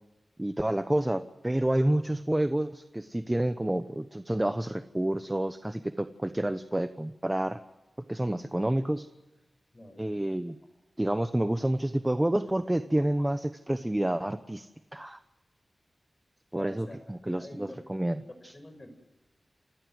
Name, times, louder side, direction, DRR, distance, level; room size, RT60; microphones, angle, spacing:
voice 1, 0.4-7.6 8.1-9.1 10.0-10.6 11.0-14.6 14.9-15.2 16.5-18.5, right 1 dB, 15° right, 11 dB, 0.9 m, -29 dB
voice 2, 9.7-10.0 12.9-13.3 14.2-14.3 16.5-18.9, left 1 dB, 30° left, 8 dB, 6.1 m, -48 dB
29.0 x 16.5 x 7.8 m, 1.1 s
wide cardioid pair, 85°, 0 cm